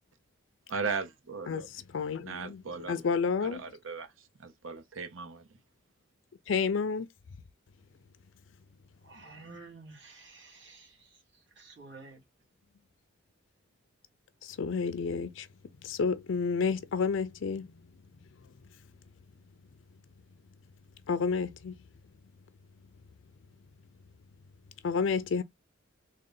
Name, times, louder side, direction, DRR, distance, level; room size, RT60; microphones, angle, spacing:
voice 1, 0.7-1.7 2.2-3.0 3.6-4.1 4.4-5.5, right 5 dB, 80° right, 0.8 m, -37 dB
voice 2, 1.5-2.6 2.9-3.6 6.5-7.1 14.4-15.5 15.8-17.7 21.1-21.7 24.8-25.4, left 5 dB, 70° left, 0.4 m, -30 dB
voice 3, 9.0-11.2 11.6-12.2, right 3 dB, 60° right, 2.3 m, -50 dB
3.7 x 2.2 x 3.8 m
head